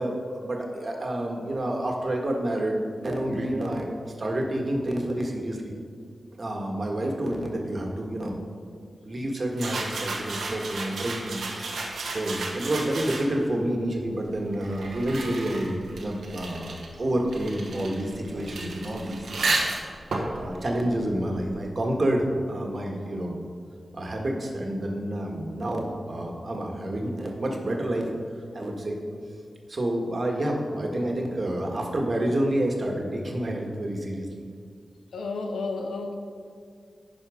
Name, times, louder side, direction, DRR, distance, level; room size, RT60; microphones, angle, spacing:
voice 1, 0.0-3.9 4.2-5.7 6.4-8.4 9.0-11.4 12.1-19.7 20.3-23.4 23.9-28.1 28.5-29.0 29.3-29.4 29.7-34.3, right 1 dB, 55° right, 1 dB, 1.6 m, -29 dB
sound 1, 9.5-13.5 14.3-21.7, right 2 dB, 85° right, 1.1 m, -33 dB
voice 2, 35.1-36.2, left 3 dB, 90° left, 4 dB, 0.8 m, -31 dB
10.5 x 5.0 x 5.0 m, 2.2 s
cardioid pair, 40°, 0 cm